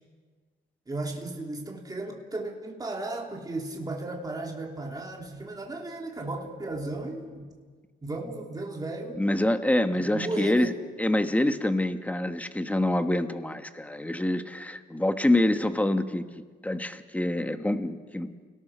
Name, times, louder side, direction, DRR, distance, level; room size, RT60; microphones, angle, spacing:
voice 1, 0.9-7.4 8.0-9.2 10.1-10.7, right 2 dB, 20° right, 0 dB, 3.1 m, -35 dB
voice 2, 9.2-10.7 11.0-16.2 16.6-18.5, left 1 dB, 5° left, 8 dB, 1.5 m, -26 dB
29.5 x 18.0 x 6.3 m, 1.5 s
cardioid pair, 90°, 20 cm